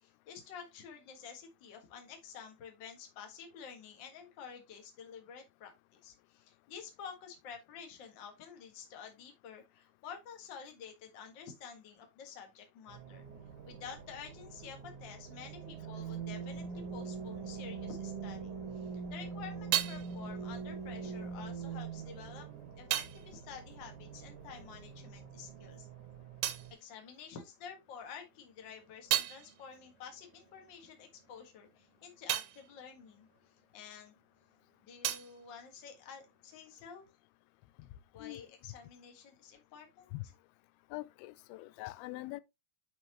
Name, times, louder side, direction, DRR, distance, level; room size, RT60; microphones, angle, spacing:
voice 1, 0.0-5.7 6.0-13.2 13.6-22.5 22.8-25.9 26.8-33.3 33.7-34.2 34.8-37.1 38.1-40.3, left 7 dB, 45° left, 1.6 m, -50 dB
sound 1, 12.9-26.7, right 5 dB, 60° right, 1.5 m, -44 dB
sound 2, 18.9-24.9 25.2-27.9 28.3-34.3 34.5-36.6, right 13 dB, 90° right, 2.7 m, -40 dB
voice 2, 40.9-42.4, left 20 dB, 90° left, 2.5 m, -43 dB
9.4 x 4.7 x 3.0 m
omnidirectional pair, 4.4 m